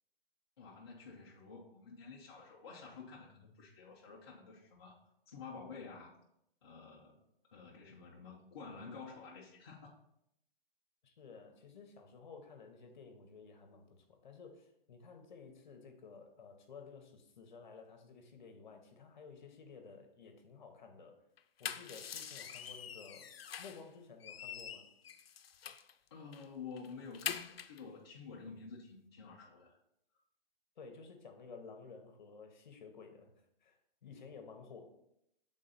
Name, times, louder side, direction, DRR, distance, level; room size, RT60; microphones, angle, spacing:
voice 1, 0.6-5.0 5.3-6.1 6.6-7.2 7.5-10.0 26.1-29.8, left 5 dB, 25° left, -4 dB, 0.6 m, -50 dB
voice 2, 11.0-21.2 21.6-23.3 23.6-24.9 30.8-34.8, left 5 dB, 50° left, 5 dB, 1.0 m, -54 dB
sound 1, 21.4-23.9 24.2-25.9 26.3-26.5 26.8-27.8, left 8 dB, 90° left, 0.6 m, -44 dB
6.3 x 3.8 x 4.1 m, 0.78 s
hypercardioid pair, 170°, 29 cm